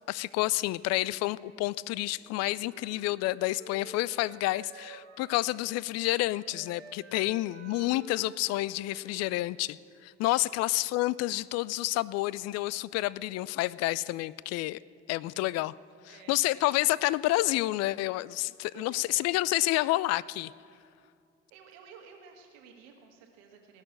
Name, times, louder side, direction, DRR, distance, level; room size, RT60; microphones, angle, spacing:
voice 1, 0.1-9.7 10.0-14.8 15.1-15.7 16.3-20.5, left 18 dB, 50° left, 21 dB, 0.4 m, -29 dB
Wind instrument woodwind instrument, 2.2-5.8 6.0-10.0, right 3 dB, 90° right, 1.1 m, -51 dB
voice 2, 16.1-16.7 18.7-19.4 20.9-21.0 21.5-23.8, right 6 dB, 70° right, 3 dB, 1.9 m, -53 dB
18.5 x 6.5 x 8.8 m, 2.4 s
figure-of-eight pair, 50°, 32 cm